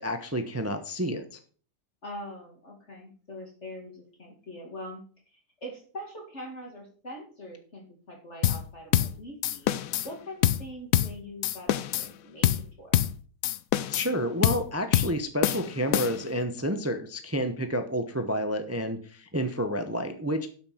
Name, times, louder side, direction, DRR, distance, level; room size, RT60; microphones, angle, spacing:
voice 1, 0.0-1.4 13.9-20.5, equal, 15° right, 7 dB, 0.7 m, -30 dB
voice 2, 2.0-5.0 5.3-9.7 10.0-13.0, equal, 45° left, 0 dB, 2.6 m, -43 dB
sound 1, 8.4-8.7 8.9-9.2 9.4-10.1 10.4-10.7 10.9-11.2 11.4-12.1 12.4-12.7 12.9-13.2 13.4-14.1 14.4-14.7 14.9-15.2 15.4-16.3, left 12 dB, 65° left, 0.9 m, -25 dB
12.0 x 6.0 x 5.7 m, 0.43 s
omnidirectional pair, 1.7 m